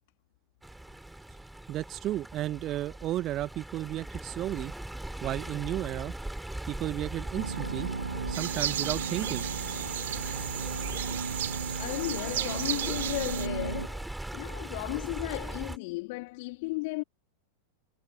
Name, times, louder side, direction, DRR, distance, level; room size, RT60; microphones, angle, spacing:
Stream, 0.6-15.8, right 1 dB, 5° right, 7.2 m, -40 dB
voice 1, 1.7-4.7 5.2-6.1 6.7-7.9 8.3-9.4, right 14 dB, 35° right, 1.8 m, -33 dB
sound 1, 7.3-13.9, right 4 dB, 75° right, 1.8 m, -36 dB
sound 2, 8.3-13.5, right 12 dB, 60° right, 3.0 m, -35 dB
voice 2, 11.8-17.0, left 25 dB, 50° left, 3.4 m, -35 dB
figure-of-eight pair, 90°, 0 cm